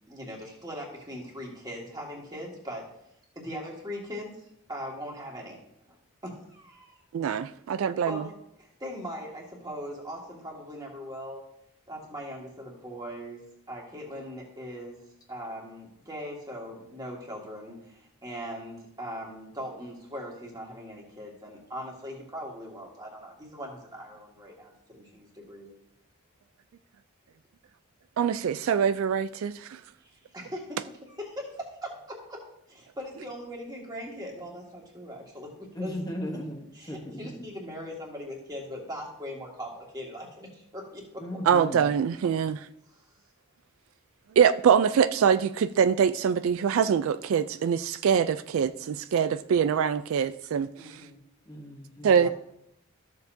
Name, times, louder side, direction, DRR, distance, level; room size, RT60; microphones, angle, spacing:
voice 1, 0.1-2.9 3.4-5.6 6.2-7.0 8.1-11.4 11.9-13.4 13.7-15.0 15.3-25.7 30.0-32.4 32.7-36.0 36.7-41.2 42.9-43.0 50.8-51.2 52.1-52.3, equal, 20° right, 1.9 m, -40 dB
voice 2, 7.1-8.2 28.2-29.8 41.5-42.6 44.4-50.7 52.0-52.3, right 7 dB, 75° right, 0.3 m, -24 dB
voice 3, 35.8-37.4 41.2-41.8 51.5-52.2, equal, 15° left, 1.0 m, -37 dB
13.5 x 7.0 x 2.7 m
head